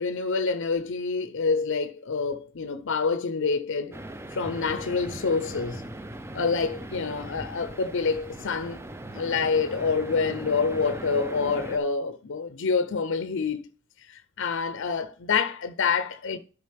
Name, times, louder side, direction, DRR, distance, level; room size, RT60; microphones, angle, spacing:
voice 1, 0.0-4.0 4.4-5.8 6.3-8.8 9.1-13.6 14.4-16.4, left 5 dB, 60° left, 0.6 m, -27 dB
sound 1, 3.9-11.8, right 1 dB, 10° right, 0.5 m, -39 dB
11.5 x 5.1 x 3.4 m
head